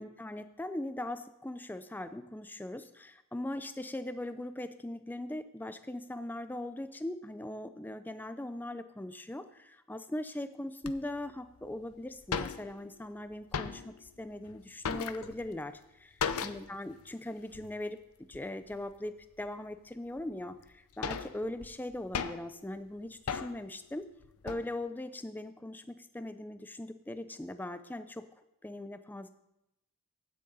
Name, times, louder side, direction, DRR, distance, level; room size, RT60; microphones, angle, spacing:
voice 1, 0.0-15.8 16.4-18.0 18.3-24.1 24.4-28.3 28.6-29.3, left 1 dB, 10° left, 11 dB, 0.4 m, -40 dB
sound 1, 10.8-10.9 11.6-11.7 11.9-12.0 12.2-13.0 13.3-14.1 14.4-15.6 16.2-16.8 17.1-17.2 17.5-17.7 18.3-18.8 19.4-19.5 20.2-20.3 20.7-22.6 23.3-23.7 24.2-24.7, left 6 dB, 90° left, 0.5 m, -37 dB
16.0 x 6.6 x 4.0 m, 0.88 s
head